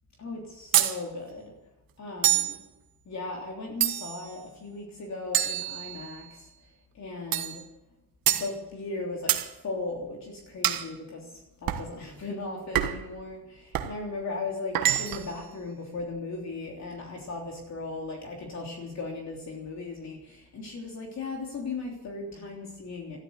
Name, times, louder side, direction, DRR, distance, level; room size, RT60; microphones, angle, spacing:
voice 1, 0.2-1.5 2.0-2.6 3.0-6.5 6.9-7.6 8.3-23.2, left 3 dB, 40° left, 0 dB, 3.3 m, -37 dB
sound 1, 0.7-1.0 2.2-2.6 3.8-4.3 5.3-6.2 7.3-7.6 8.3-8.5 9.3-9.5 10.6-10.9 11.7-11.9 12.7-13.1 13.7-14.0 14.7-15.3, right 12 dB, 60° right, 1.5 m, -26 dB
13.5 x 12.5 x 8.2 m, 0.98 s
cardioid pair, 105°, 40 cm